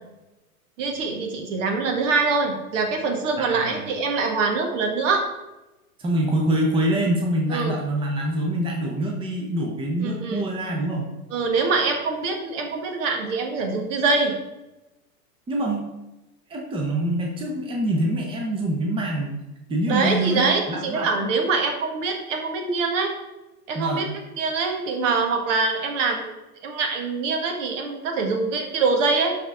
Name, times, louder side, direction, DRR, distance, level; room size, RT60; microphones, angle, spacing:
voice 1, 0.8-5.2 7.5-7.8 10.0-10.5 11.3-14.3 19.9-23.2 23.7-24.1 24.4-26.4 26.6-29.4, right 4 dB, 55° right, 3 dB, 1.7 m, -24 dB
voice 2, 3.4-3.9 6.0-11.1 15.5-15.9 16.5-19.4 19.7-21.1 23.7-24.1, right 1 dB, 10° right, 0 dB, 1.0 m, -25 dB
12.0 x 4.2 x 3.6 m, 1.0 s
hypercardioid pair, 110°, 46 cm